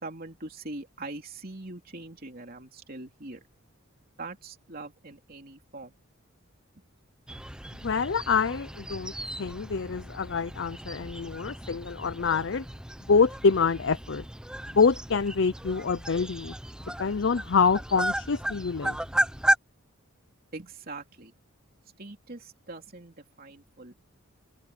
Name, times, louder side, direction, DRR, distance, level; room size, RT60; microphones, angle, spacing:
voice 1, 0.0-3.4 4.2-5.9 20.5-21.3 22.0-23.9, right 2 dB, 45° right, 3.2 m, -42 dB
sound 1, 7.3-19.6, right 1 dB, 5° right, 0.7 m, -34 dB
voice 2, 7.8-9.1 9.4-12.6 13.1-14.2 14.7-16.5 17.0-19.0, left 5 dB, 60° left, 0.5 m, -26 dB
head